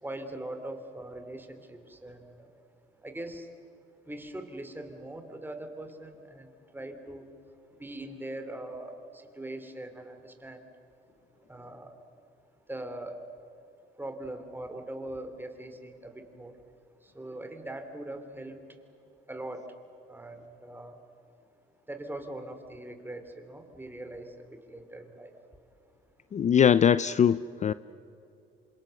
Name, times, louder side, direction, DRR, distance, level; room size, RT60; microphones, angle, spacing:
voice 1, 0.0-2.5 3.0-3.5 4.1-6.5 6.7-7.3 7.8-10.6 11.5-11.9 12.7-13.2 14.0-16.5 17.1-18.6 19.3-19.6 20.1-20.9 21.9-24.3 24.7-25.3, right 1 dB, 10° right, 6 dB, 3.0 m, -41 dB
voice 2, 26.3-27.7, left 8 dB, 35° left, 16 dB, 0.5 m, -22 dB
28.5 x 26.0 x 6.5 m, 2.7 s
cardioid pair, 115°, 21 cm